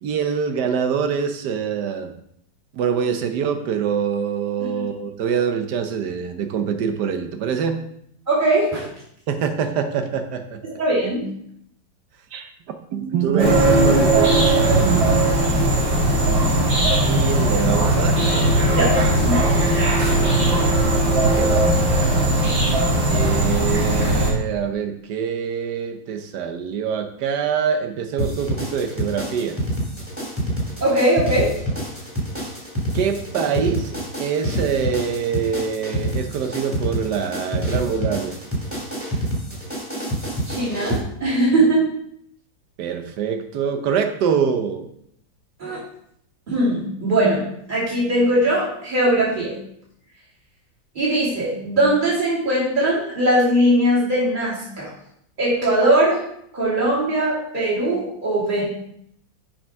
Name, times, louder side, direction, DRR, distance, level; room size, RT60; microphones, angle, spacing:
voice 1, 0.0-2.1 2.7-7.8 9.3-10.6 12.3-12.5 12.9-15.1 17.0-18.2 21.2-21.8 23.1-29.6 32.9-33.9 34.2-38.4 42.8-44.9, right 7 dB, 65° right, 7 dB, 1.4 m, -24 dB
voice 2, 8.3-8.8 10.6-11.2 18.7-19.4 30.8-31.5 40.5-41.8 45.6-45.8 46.5-49.5 50.9-54.9 55.4-56.2 56.5-58.6, right 1 dB, 25° right, -7 dB, 3.0 m, -20 dB
sound 1, 13.4-24.3, right 1 dB, 85° right, 3.7 m, -18 dB
sound 2, 28.2-41.0, right 1 dB, 5° right, 2.3 m, -27 dB
7.1 x 5.3 x 5.3 m, 0.72 s
omnidirectional pair, 2.0 m